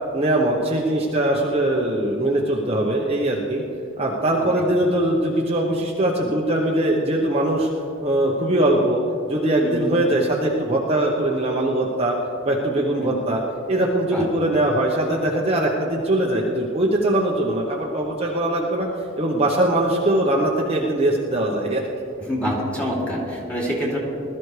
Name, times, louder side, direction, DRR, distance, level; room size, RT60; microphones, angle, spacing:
voice 1, 0.1-3.6 4.0-7.7 8.0-9.0 9.3-12.2 12.4-13.4 13.7-18.9 19.2-21.8, right 1 dB, 30° right, -2 dB, 1.0 m, -21 dB
voice 2, 22.2-24.0, equal, 5° left, -5 dB, 2.7 m, -26 dB
20.5 x 13.0 x 3.3 m, 2.8 s
head